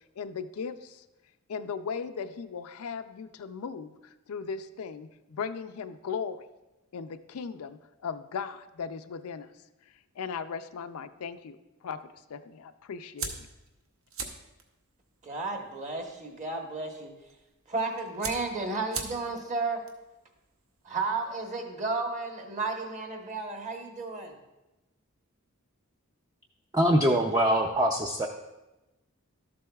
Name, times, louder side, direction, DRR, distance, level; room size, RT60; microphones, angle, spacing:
voice 1, 0.2-1.0 1.5-6.4 6.9-9.5 10.2-11.6 11.8-12.0 12.3-13.5, left 6 dB, 80° left, 10 dB, 0.4 m, -37 dB
sound 1, 13.2-21.6, right 5 dB, 65° right, 0.9 m, -43 dB
voice 2, 15.2-17.1 17.7-19.8 20.8-24.3, right 3 dB, 35° right, 2 dB, 1.1 m, -33 dB
voice 3, 26.7-28.3, equal, 15° right, 2 dB, 0.4 m, -23 dB
12.5 x 7.6 x 2.3 m, 1.0 s
head